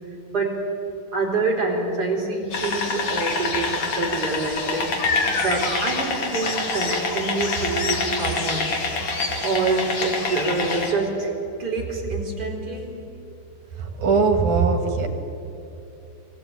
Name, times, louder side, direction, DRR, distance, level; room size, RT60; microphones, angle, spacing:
voice 1, 0.3-0.6 1.1-8.7 9.4-11.3 11.6-13.1, right 3 dB, 30° right, -1 dB, 4.2 m, -26 dB
sound 1, 2.5-10.9, left 3 dB, 45° left, 2.9 m, -26 dB
voice 2, 13.8-15.1, right 4 dB, 65° right, 4 dB, 3.2 m, -20 dB
22.0 x 15.0 x 8.8 m, 2.8 s
omnidirectional pair, 3.8 m